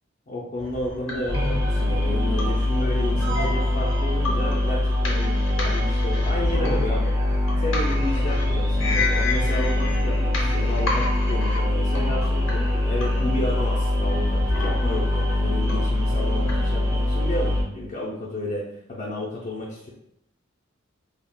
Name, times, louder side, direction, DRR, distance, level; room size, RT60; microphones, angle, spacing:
voice 1, 0.3-7.1 7.6-19.9, left 1 dB, 40° left, -6 dB, 0.5 m, -32 dB
sound 1, 0.6-16.7, left 2 dB, 75° left, 0.7 m, -32 dB
sound 2, 1.3-17.6, left 1 dB, 20° right, 0.5 m, -23 dB
3.4 x 2.3 x 2.3 m, 0.77 s
head